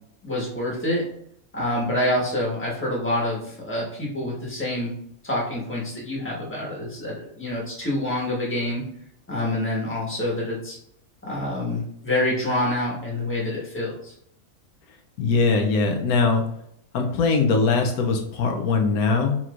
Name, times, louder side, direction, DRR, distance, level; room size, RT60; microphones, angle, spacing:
voice 1, 0.2-1.0 1.5-4.9 5.2-8.8 9.3-10.8 11.2-14.1, left 1 dB, 10° left, -5 dB, 1.3 m, -27 dB
voice 2, 15.2-16.4 16.9-19.4, left 4 dB, 85° left, 3 dB, 1.2 m, -21 dB
5.6 x 3.0 x 2.5 m, 0.71 s
omnidirectional pair, 1.5 m